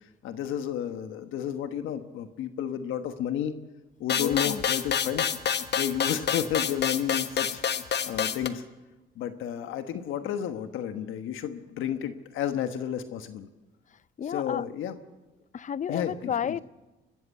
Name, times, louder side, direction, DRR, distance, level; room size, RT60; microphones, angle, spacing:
voice 1, 0.2-3.5 4.0-5.3 5.7-7.6 8.1-8.6 9.1-13.5 14.3-15.0 15.9-16.3, left 9 dB, 85° left, 9 dB, 1.2 m, -31 dB
sound 1, 4.1-8.5, left 8 dB, 60° left, 1.2 m, -28 dB
voice 2, 4.2-4.6 14.2-14.6 15.5-16.6, left 8 dB, 40° left, 19 dB, 0.6 m, -31 dB
23.5 x 13.5 x 8.3 m, 1.1 s
cardioid pair, 90°, 20 cm